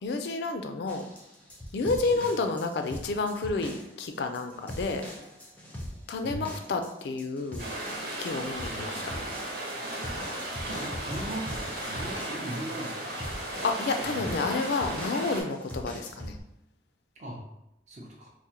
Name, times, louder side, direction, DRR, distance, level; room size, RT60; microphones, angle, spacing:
voice 1, 0.0-1.0 1.7-5.1 6.1-7.7 8.2-8.9 13.6-16.4, left 3 dB, 65° left, 6 dB, 0.4 m, -30 dB
sound 1, 0.9-16.4, equal, 10° left, 0.5 m, -42 dB
sound 2, 7.6-15.4, right 1 dB, 65° right, 0.9 m, -35 dB
voice 2, 10.6-13.1 14.1-14.5 17.2-17.4 17.9-18.3, right 1 dB, 40° right, -1 dB, 0.5 m, -39 dB
4.6 x 2.1 x 2.8 m, 0.85 s
head